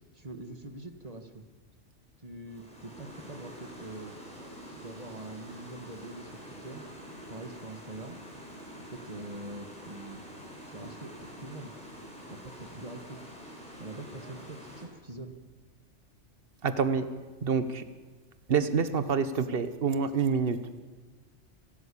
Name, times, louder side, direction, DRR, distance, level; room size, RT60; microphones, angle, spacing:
voice 1, 0.1-1.4 2.2-4.1 4.8-6.8 7.3-8.2 8.7-10.2 10.7-11.7 12.3-13.2 13.8-15.3, right 2 dB, 30° right, 7 dB, 1.7 m, -44 dB
sound 1, 2.5-14.8, equal, 5° left, 6.0 m, -47 dB
voice 2, 16.6-17.1 17.4-17.8 18.5-20.8, right 6 dB, 55° right, 11 dB, 1.4 m, -27 dB
28.5 x 13.0 x 8.6 m, 1.4 s
omnidirectional pair, 1.2 m